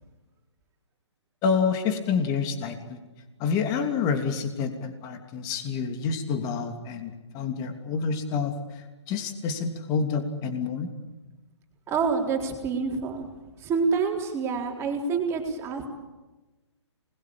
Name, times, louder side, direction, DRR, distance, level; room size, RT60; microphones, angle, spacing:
voice 1, 1.4-3.0 3.4-10.9, left 5 dB, 25° left, 6 dB, 3.0 m, -28 dB
voice 2, 11.9-13.3 13.6-15.9, right 5 dB, 15° right, 1 dB, 4.0 m, -27 dB
26.5 x 21.0 x 8.8 m, 1.1 s
hypercardioid pair, 145°, 15 cm